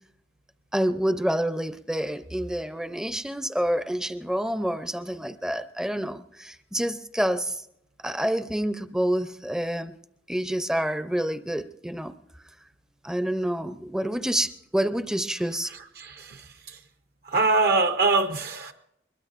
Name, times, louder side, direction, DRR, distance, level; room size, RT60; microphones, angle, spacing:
voice 1, 0.7-7.6 8.0-9.9 10.3-12.1 13.0-15.7, equal, 5° right, 11 dB, 0.5 m, -28 dB
voice 2, 15.7-16.8 17.2-18.7, right 3 dB, 55° right, 8 dB, 0.6 m, -24 dB
22.0 x 21.5 x 2.5 m, 0.80 s
head